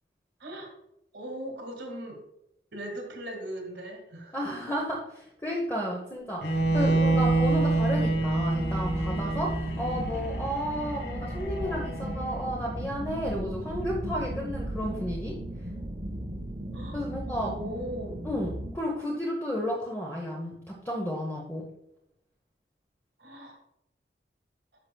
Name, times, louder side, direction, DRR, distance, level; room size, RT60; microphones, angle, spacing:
voice 1, 1.1-2.2 2.7-4.4 16.7-17.0 17.3-18.3 23.2-23.6, right 1 dB, 75° right, 2 dB, 1.8 m, -39 dB
voice 2, 4.3-9.5 9.8-15.4 16.9-17.5 18.2-20.5 20.8-21.7, equal, 15° left, -3 dB, 0.9 m, -32 dB
Bowed string instrument, 6.4-12.5, right 2 dB, 65° left, 1.3 m, -27 dB
sound 1, 6.5-18.7, right 1 dB, 35° right, 0.7 m, -36 dB
sound 2, 11.4-17.6, equal, 45° left, 3.0 m, -46 dB
10.5 x 5.9 x 2.3 m, 0.79 s
head